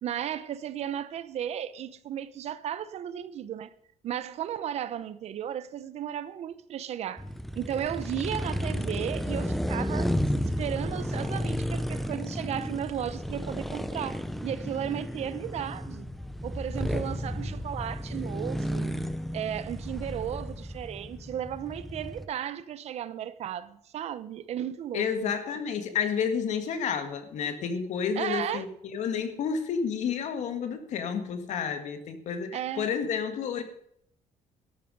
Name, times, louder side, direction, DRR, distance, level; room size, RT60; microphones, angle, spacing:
voice 1, 0.0-3.7 4.0-7.2 7.5-10.2 10.6-16.1 16.4-18.9 19.3-25.3 28.2-28.6 32.5-32.9, right 10 dB, 55° right, 0.8 m, -34 dB
sound 1, 7.2-22.2, equal, ahead, 0.7 m, -33 dB
voice 2, 24.9-33.6, left 7 dB, 60° left, 1.9 m, -30 dB
12.5 x 12.5 x 5.3 m
cardioid pair, 165°, 13 cm